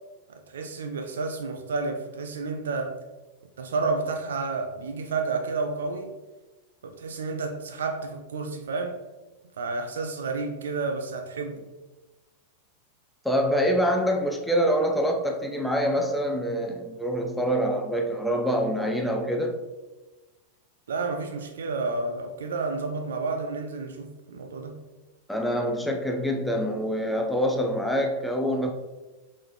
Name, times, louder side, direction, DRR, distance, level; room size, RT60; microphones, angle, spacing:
voice 1, 0.3-3.0 3.6-6.1 6.8-9.0 9.6-11.7 20.9-24.8, right 3 dB, 65° right, 0.4 m, -30 dB
voice 2, 13.2-19.6 25.3-28.7, equal, 5° left, 0.5 m, -25 dB
4.1 x 3.7 x 3.1 m
figure-of-eight pair, 90°, 0 cm